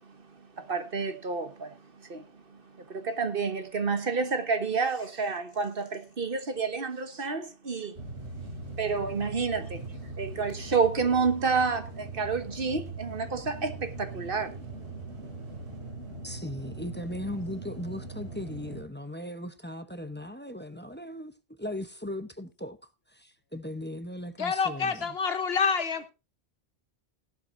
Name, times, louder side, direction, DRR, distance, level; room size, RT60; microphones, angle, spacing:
voice 1, 0.6-2.3 2.8-8.0 8.8-9.8 10.2-14.5, right 5 dB, 55° right, 1.5 m, -29 dB
sound 1, 7.9-18.8, right 2 dB, 85° right, 4.3 m, -40 dB
voice 2, 16.2-21.3 21.6-22.8 23.1-25.2, left 1 dB, 10° left, 0.8 m, -38 dB
voice 3, 24.4-26.1, left 5 dB, 70° left, 1.4 m, -27 dB
16.5 x 11.5 x 2.6 m
omnidirectional pair, 1.1 m